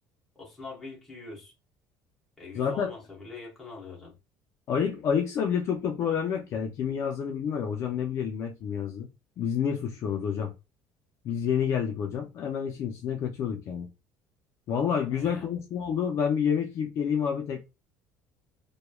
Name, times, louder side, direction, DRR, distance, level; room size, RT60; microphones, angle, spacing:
voice 1, 0.3-1.5 2.4-4.2 15.1-15.5, left 3 dB, 5° left, 0.9 m, -43 dB
voice 2, 2.5-2.9 4.7-9.1 9.4-10.5 11.2-13.9 14.7-17.6, left 7 dB, 40° left, 0.4 m, -28 dB
3.0 x 2.2 x 2.2 m
cardioid pair, 170°, 7 cm